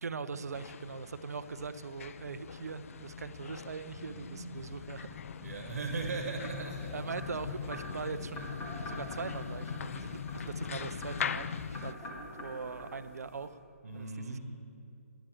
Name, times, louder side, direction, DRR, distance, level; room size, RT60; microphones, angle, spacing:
voice 1, 0.0-5.2 6.9-8.5 8.9-11.5 11.8-12.0 12.4-13.5 13.9-14.4, right 5 dB, 85° right, 13 dB, 0.5 m, -41 dB
sound 1, 0.5-11.9, left 7 dB, 60° left, 0.4 m, -41 dB
voice 2, 3.9-4.7 5.4-6.9 13.8-14.4, right 3 dB, 70° right, 3 dB, 1.2 m, -39 dB
sound 2, 4.5-11.7, left 4 dB, 5° left, 0.5 m, -56 dB
sound 3, 6.4-13.5, left 1 dB, 20° left, 1.9 m, -46 dB
10.0 x 8.7 x 4.8 m, 2.5 s
hypercardioid pair, 150°, 8 cm